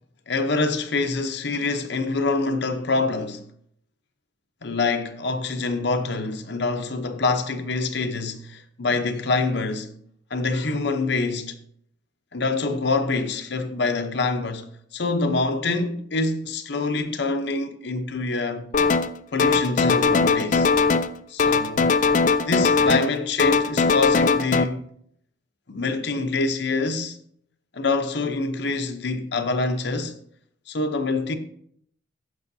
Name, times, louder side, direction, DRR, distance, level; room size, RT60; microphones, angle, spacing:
voice 1, 0.3-3.5 4.6-9.9 10.3-11.5 12.3-18.7 19.3-20.7 21.3-22.0 22.5-24.8 25.7-27.2 27.7-30.2 30.7-31.4, left 3 dB, 55° left, 0.7 m, -25 dB
sound 1, 18.7-19.1 19.4-21.1 21.4-23.1 23.4-24.6, left 4 dB, 40° left, 0.4 m, -20 dB
15.5 x 6.3 x 2.7 m
head